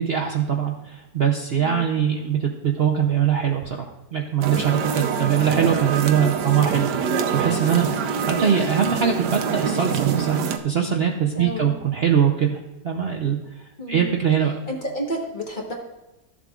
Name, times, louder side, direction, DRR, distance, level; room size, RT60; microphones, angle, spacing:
voice 1, 0.0-7.1 7.3-12.6 12.8-13.4 13.9-14.6, right 8 dB, 85° right, 2 dB, 0.5 m, -22 dB
sound 1, 4.4-10.6, right 6 dB, 70° right, 1.3 m, -25 dB
voice 2, 11.3-11.7 13.8-14.1 14.7-15.7, equal, 30° left, 0 dB, 1.3 m, -30 dB
13.5 x 7.3 x 2.4 m, 1.0 s
omnidirectional pair, 2.0 m